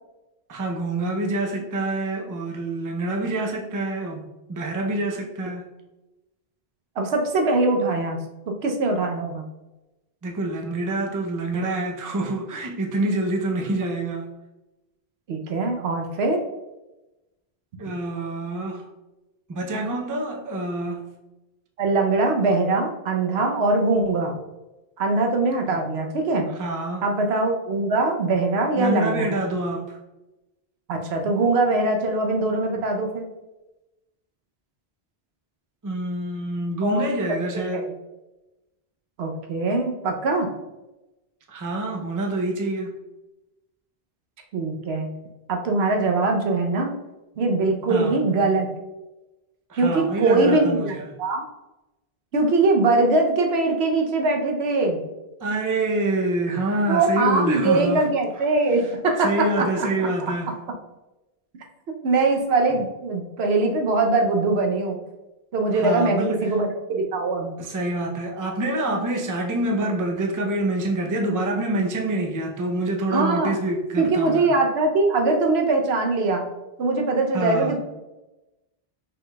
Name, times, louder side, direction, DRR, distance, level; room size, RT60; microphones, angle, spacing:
voice 1, 0.5-4.2 4.5-5.7 10.2-14.3 17.8-18.8 19.5-21.1 26.5-27.0 28.8-30.0 35.8-37.9 41.5-42.9 47.9-48.2 49.7-51.1 55.4-58.1 58.8-58.9 59.2-60.5 65.7-66.5 67.6-74.5 77.3-77.8, right 2 dB, 25° right, 1 dB, 0.5 m, -26 dB
voice 2, 7.0-8.2 8.6-9.4 15.3-16.4 21.8-24.3 25.0-26.5 27.0-29.3 30.9-33.3 36.8-37.0 37.5-37.8 39.2-40.5 44.5-45.1 45.5-46.9 47.4-48.7 49.8-51.4 52.3-55.0 56.9-60.3 62.0-65.0 65.5-67.5 73.1-73.6 74.0-76.4 76.8-77.8, right 3 dB, 85° right, 3 dB, 1.0 m, -22 dB
5.4 x 3.9 x 2.2 m, 1.0 s
omnidirectional pair, 1.0 m